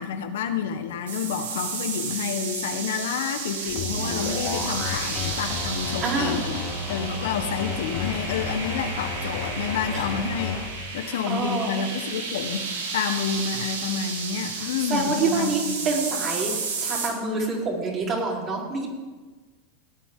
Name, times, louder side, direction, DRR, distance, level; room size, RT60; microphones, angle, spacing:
voice 1, 0.0-10.6 10.9-15.9, left 7 dB, 75° left, 7 dB, 1.3 m, -29 dB
sound 1, 1.1-17.1, right 4 dB, 80° right, 2.6 m, -32 dB
sound 2, 3.7-10.7, left 3 dB, 45° left, 3.1 m, -32 dB
voice 2, 6.0-6.4 9.9-10.0 11.0-11.8 14.9-16.5 16.8-18.9, right 3 dB, 35° right, -3 dB, 4.3 m, -26 dB
18.0 x 9.4 x 3.8 m, 1.3 s
hypercardioid pair, 100°, 0 cm